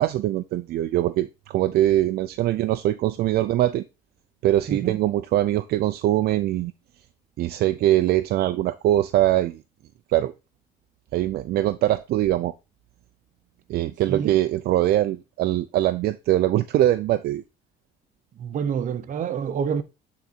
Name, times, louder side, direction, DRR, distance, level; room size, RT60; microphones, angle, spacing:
voice 1, 0.0-3.8 4.4-6.7 7.4-9.6 10.1-10.3 11.1-12.5 13.7-17.4, right 14 dB, 70° right, 0.6 m, -22 dB
voice 2, 4.7-5.1 14.1-14.4 18.3-19.8, right 7 dB, 50° right, 1.0 m, -27 dB
9.0 x 4.1 x 4.3 m
cardioid pair, 110°, 17 cm